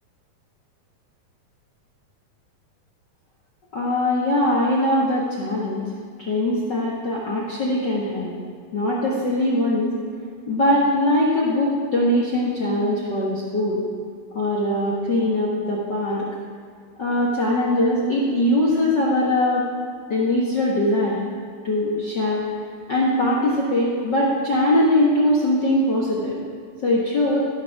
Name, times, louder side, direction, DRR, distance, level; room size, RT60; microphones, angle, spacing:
voice 1, 3.7-5.8 6.2-8.3 8.7-9.9 10.5-13.8 14.3-16.3 17.0-19.7 20.1-21.2 21.6-22.4 22.9-26.3 26.8-27.4, left 1 dB, 75° left, -5 dB, 1.0 m, -21 dB
15.5 x 6.5 x 5.9 m, 2.2 s
omnidirectional pair, 4.2 m